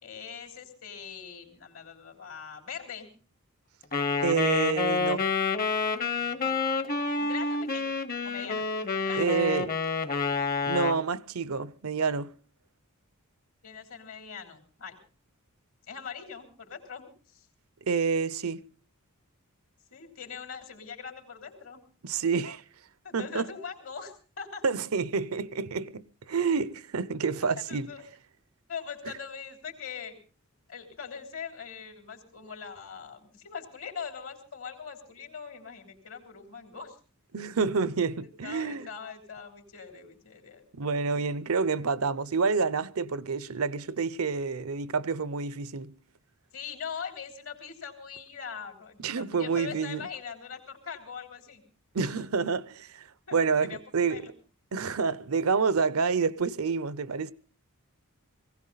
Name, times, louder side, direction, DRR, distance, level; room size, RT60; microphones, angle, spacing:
voice 1, 0.0-3.1 6.2-6.8 7.2-7.9 8.2-8.6 9.0-9.4 13.6-15.0 15.9-17.4 19.9-21.8 23.0-24.6 27.6-28.0 28.7-30.2 30.7-37.0 38.4-40.6 41.1-41.2 46.5-51.6 53.3-53.8 54.1-54.3, left 6 dB, 70° left, 3.5 m, -42 dB
Wind instrument woodwind instrument, 3.9-11.0, left 4 dB, 40° left, 1.1 m, -28 dB
voice 2, 4.2-5.2 9.1-9.7 10.6-12.3 17.9-18.7 22.0-22.6 23.1-23.5 24.6-27.9 37.3-38.9 40.7-45.9 49.0-50.0 51.9-54.3 54.7-57.3, right 5 dB, 75° right, 0.7 m, -28 dB
19.5 x 16.5 x 4.0 m
head